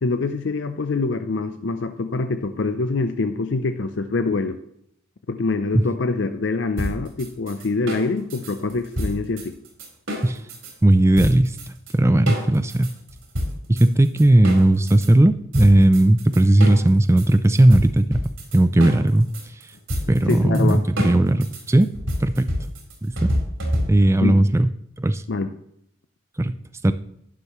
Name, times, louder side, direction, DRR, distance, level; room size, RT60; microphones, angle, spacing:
voice 1, 0.0-4.6 5.3-9.6 20.3-20.8 24.2-24.4 25.3-25.5, left 3 dB, 60° left, 9 dB, 0.6 m, -25 dB
sound 1, 6.8-10.7 11.2-11.9 12.3-15.1 15.5-24.2, equal, 80° right, 3.9 m, -29 dB
voice 2, 10.8-11.6 11.9-12.9 13.7-18.2 18.5-19.3 20.1-21.9 22.2-22.5 23.0-23.3 23.9-24.7 25.0-25.2 26.4-26.6 26.8-26.9, right 1 dB, 15° right, 11 dB, 0.4 m, -17 dB
12.0 x 9.9 x 3.1 m, 0.73 s
head